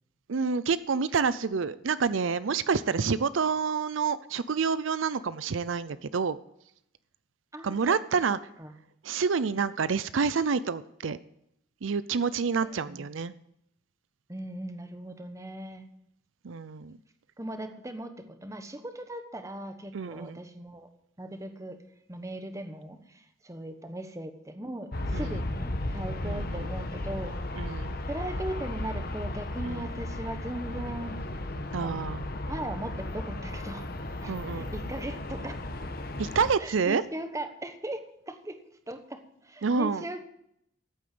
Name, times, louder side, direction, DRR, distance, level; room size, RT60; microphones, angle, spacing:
voice 1, 0.3-6.4 7.6-8.4 9.0-11.2 11.8-13.3 16.4-17.0 19.9-20.4 25.1-25.3 26.2-26.7 27.6-27.9 29.7-29.9 31.7-32.2 34.3-34.7 36.2-37.0 39.6-40.0, right 5 dB, 80° right, 16 dB, 0.5 m, -28 dB
voice 2, 7.5-8.0 8.3-8.7 12.6-13.1 14.3-15.9 17.4-20.9 21.2-21.8 22.1-27.4 27.6-31.2 31.8-32.0 32.5-35.6 36.6-38.6 38.9-40.3, right 1 dB, 15° right, 8 dB, 1.2 m, -39 dB
Aircraft, 24.9-36.5, left 1 dB, 50° left, 1.3 m, -35 dB
14.5 x 8.6 x 7.7 m, 0.76 s
head